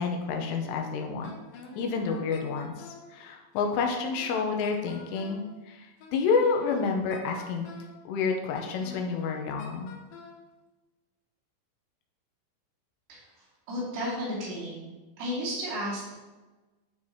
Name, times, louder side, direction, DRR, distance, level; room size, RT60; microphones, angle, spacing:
voice 1, 0.0-1.3 1.7-7.7 8.1-9.9, left 5 dB, 90° left, 3 dB, 2.9 m, -29 dB
Wind instrument woodwind instrument, 1.2-3.1 3.6-5.5 6.0-8.0 8.5-10.4, left 4 dB, 70° left, 2.5 m, -47 dB
voice 2, 13.7-14.8 15.2-16.1, equal, 85° right, -8 dB, 5.1 m, -33 dB
12.0 x 4.8 x 2.8 m, 1.2 s
omnidirectional pair, 4.9 m